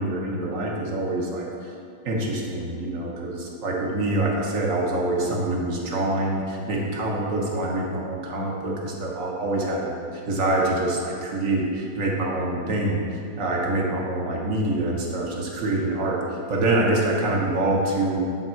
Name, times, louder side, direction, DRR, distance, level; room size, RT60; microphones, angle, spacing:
voice 1, 0.0-1.7 2.0-10.0 10.2-18.2, right 2 dB, 55° right, -2 dB, 1.1 m, -25 dB
10.0 x 3.6 x 4.3 m, 2.5 s
omnidirectional pair, 1.9 m